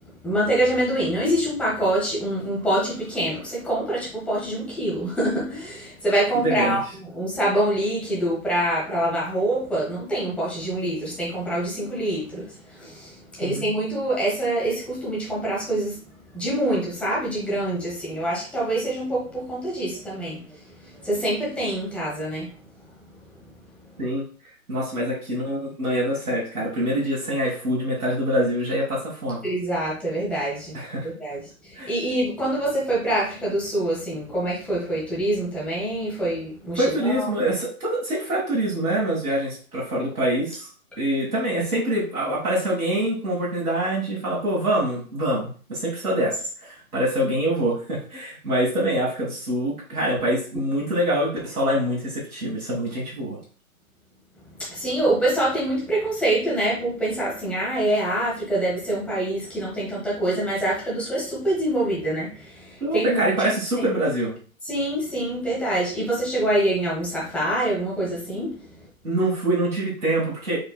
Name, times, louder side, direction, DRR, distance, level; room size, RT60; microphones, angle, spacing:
voice 1, 0.2-22.6 29.4-30.7 31.0-37.3 40.9-41.0 54.6-63.5 63.7-63.9 64.6-68.7, right 1 dB, 5° left, -6 dB, 1.0 m, -25 dB
voice 2, 6.4-6.8 13.4-13.7 24.0-24.2 24.7-29.4 30.7-31.1 31.8-31.9 36.8-40.7 41.0-45.4 45.7-53.4 62.8-64.3 69.0-70.6, right 1 dB, 80° right, -5 dB, 1.9 m, -25 dB
4.6 x 3.7 x 2.2 m, 0.41 s
figure-of-eight pair, 135°, 43 cm